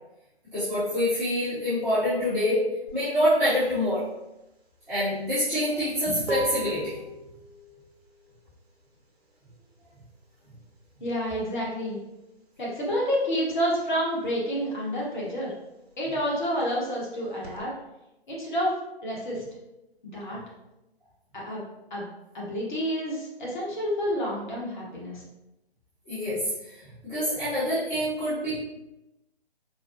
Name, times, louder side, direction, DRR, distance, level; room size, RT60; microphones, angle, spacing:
voice 1, 0.5-2.6 2.9-4.0 4.9-6.9 26.0-28.6, equal, 5° right, -16 dB, 0.9 m, -26 dB
sound 1, 2.9-13.1 13.4-17.6, right 2 dB, 70° right, 0.8 m, -41 dB
voice 2, 11.0-12.0 12.6-15.5 16.0-17.7 18.3-19.4 20.1-20.4 21.3-21.6 21.9-22.1 22.3-25.2, equal, 45° left, -5 dB, 1.1 m, -29 dB
4.1 x 2.2 x 2.6 m, 0.93 s
figure-of-eight pair, 145°, 32 cm